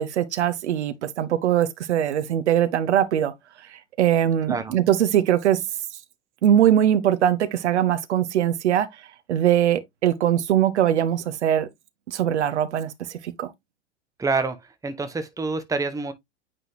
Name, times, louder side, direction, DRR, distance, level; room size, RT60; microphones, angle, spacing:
voice 1, 0.0-3.3 4.0-5.6 6.4-8.9 9.3-11.7 12.1-12.9 13.4-13.5, right 10 dB, 65° right, 1.0 m, -21 dB
voice 2, 14.2-16.1, right 3 dB, 10° right, 1.1 m, -27 dB
9.2 x 3.8 x 2.8 m
figure-of-eight pair, 90°, 36 cm